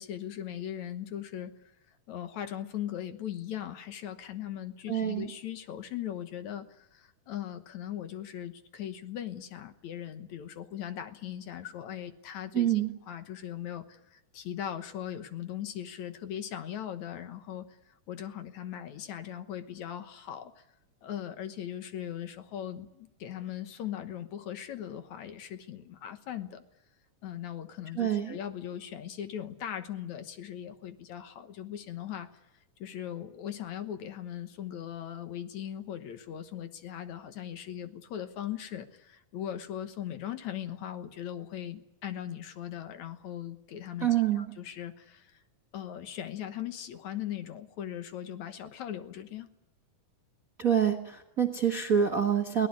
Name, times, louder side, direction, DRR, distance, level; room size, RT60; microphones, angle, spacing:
voice 1, 0.0-1.7 2.1-12.8 13.1-20.7 21.0-26.6 27.2-32.3 32.8-44.1 44.3-45.4 45.7-49.5, left 10 dB, 65° left, 9 dB, 2.4 m, -39 dB
voice 2, 4.9-5.3 12.5-12.9 28.0-28.3 44.0-44.5 50.6-52.7, right 9 dB, 45° right, 4 dB, 1.1 m, -26 dB
22.5 x 18.0 x 9.7 m, 0.87 s
omnidirectional pair, 3.8 m